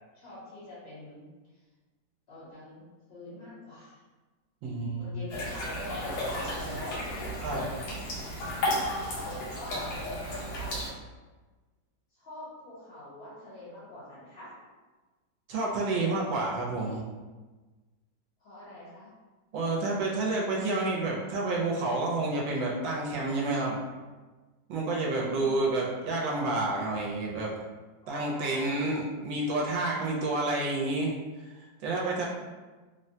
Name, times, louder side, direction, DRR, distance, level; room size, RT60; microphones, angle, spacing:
voice 1, 0.1-1.3 2.3-4.0 5.0-7.3 9.1-10.0 10.3-10.8 12.1-14.5 18.4-19.1 25.1-25.6 28.0-28.8, left 1 dB, 65° left, -10 dB, 1.7 m, -44 dB
voice 2, 4.6-5.2 7.4-7.7 15.5-17.0 19.5-23.8 24.7-27.5 28.1-31.1 31.6-32.3, right 2 dB, 85° right, -3 dB, 1.3 m, -29 dB
sound 1, 5.3-10.9, left 1 dB, 85° left, 1.4 m, -33 dB
3.5 x 2.1 x 2.7 m, 1.3 s
omnidirectional pair, 2.0 m